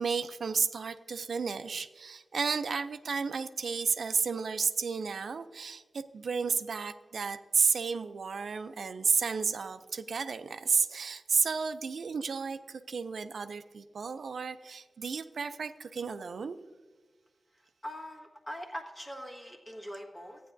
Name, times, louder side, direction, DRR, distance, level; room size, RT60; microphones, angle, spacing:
voice 1, 0.0-16.6, right 5 dB, 80° right, 10 dB, 0.4 m, -32 dB
voice 2, 17.8-20.4, equal, 15° left, 0 dB, 1.5 m, -42 dB
14.5 x 9.2 x 2.6 m, 1.4 s
wide cardioid pair, 105°, 0 cm